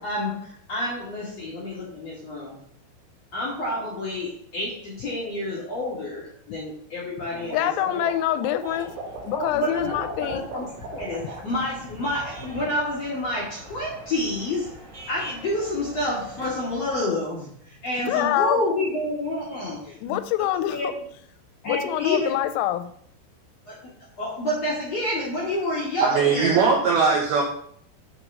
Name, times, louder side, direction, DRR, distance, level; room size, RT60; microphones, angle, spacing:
voice 1, 0.0-2.6 3.3-8.1 9.3-14.7 15.1-20.9 21.6-22.3 23.7-23.9 24.2-26.6, left 1 dB, 60° left, -7 dB, 1.6 m, -29 dB
voice 2, 7.3-8.9 9.3-10.4 18.0-18.6 19.9-20.9 21.7-22.9, left 12 dB, 85° left, 10 dB, 3.2 m, -25 dB
sound 1, 7.3-11.7 12.0-12.5, right 4 dB, 50° right, 3.4 m, -39 dB
sound 2, 8.6-17.0, equal, 30° right, 1.7 m, -43 dB
voice 3, 26.0-27.4, right 5 dB, 80° right, -1 dB, 2.2 m, -20 dB
7.4 x 4.6 x 5.3 m, 0.64 s
omnidirectional pair, 5.8 m